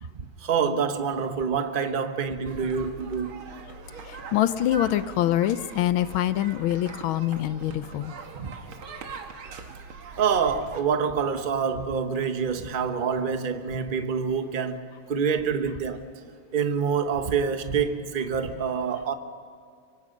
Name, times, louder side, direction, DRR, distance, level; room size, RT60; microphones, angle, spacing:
voice 1, 0.0-3.4 8.4-8.6 10.2-14.8 15.1-16.0 16.5-19.1, right 6 dB, 35° right, 0.9 m, -26 dB
sound 1, 2.5-10.8, right 5 dB, 75° right, 2.3 m, -42 dB
voice 2, 4.1-8.1, left 12 dB, 75° left, 1.5 m, -25 dB
24.5 x 24.5 x 5.2 m
omnidirectional pair, 2.3 m